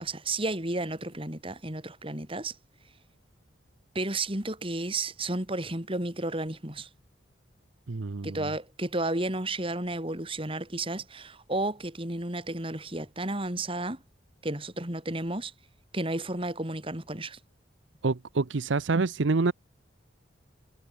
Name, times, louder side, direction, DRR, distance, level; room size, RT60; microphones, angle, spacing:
voice 1, 0.0-2.5 3.9-6.9 8.2-14.0 14.4-15.5 15.9-17.4, right 2 dB, 30° right, 3.3 m, -32 dB
voice 2, 7.9-8.5 18.0-19.5, right 3 dB, 75° right, 0.7 m, -27 dB
head